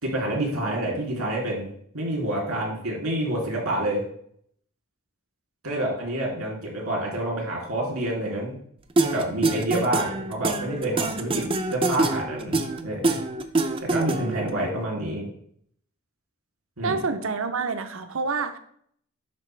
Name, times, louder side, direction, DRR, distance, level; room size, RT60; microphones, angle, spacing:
voice 1, 0.0-1.7 1.9-4.0 5.6-8.6 9.0-13.2 13.8-15.3 16.8-17.0, right 1 dB, 90° right, -1 dB, 2.7 m, -28 dB
sound 1, 9.0-14.5, right 2 dB, 25° right, 0.4 m, -25 dB
voice 2, 16.8-18.6, right 4 dB, 70° right, 9 dB, 0.7 m, -27 dB
10.5 x 4.1 x 3.2 m, 0.65 s
head